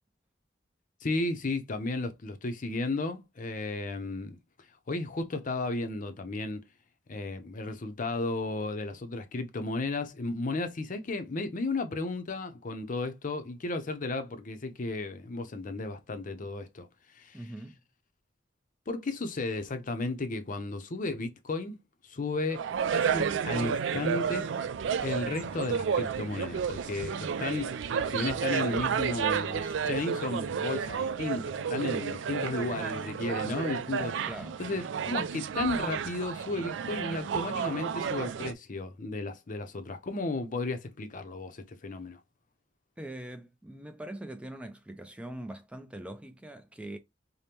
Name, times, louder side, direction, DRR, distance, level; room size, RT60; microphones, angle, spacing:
voice 1, 1.0-4.4 4.9-6.6 7.1-16.9 17.2-17.4 18.9-21.8 22.0-22.6 22.9-24.5 25.0-27.7 28.1-34.3 34.6-42.2, left 2 dB, 45° left, 0.6 m, -34 dB
voice 2, 17.3-17.8 34.3-34.6 43.0-47.0, right 1 dB, 5° right, 0.4 m, -42 dB
sound 1, 22.5-38.5, right 7 dB, 85° right, 0.4 m, -31 dB
5.1 x 2.1 x 2.9 m
head